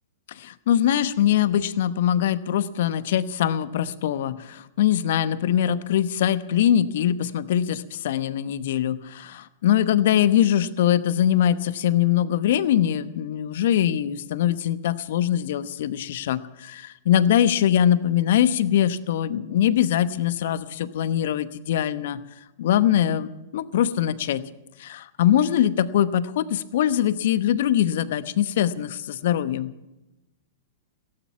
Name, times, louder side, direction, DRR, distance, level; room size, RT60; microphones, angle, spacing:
voice 1, 0.3-22.2 22.6-24.4 24.8-29.7, left 10 dB, 60° left, 14 dB, 1.0 m, -22 dB
17.0 x 14.5 x 5.8 m, 1.0 s
figure-of-eight pair, 105°, 0 cm